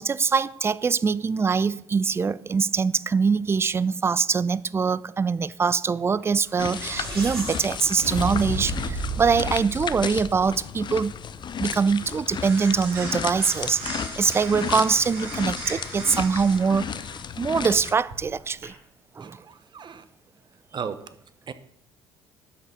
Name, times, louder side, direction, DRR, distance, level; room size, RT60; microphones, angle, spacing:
voice 1, 0.0-11.1 11.6-13.8 14.2-17.0 17.4-18.7 19.2-19.4, right 5 dB, 20° right, 0.4 m, -23 dB
sound 1, 6.5-10.9, right 1 dB, 90° right, 2.2 m, -32 dB
sound 2, 6.6-17.9, left 7 dB, 40° left, 0.6 m, -34 dB
sound 3, 10.3-18.6, right 3 dB, 70° right, 3.8 m, -40 dB
voice 2, 19.2-20.0 20.7-21.1 21.5-21.6, right 6 dB, 40° right, 0.9 m, -36 dB
12.0 x 6.3 x 5.5 m
hypercardioid pair, 55°, 12 cm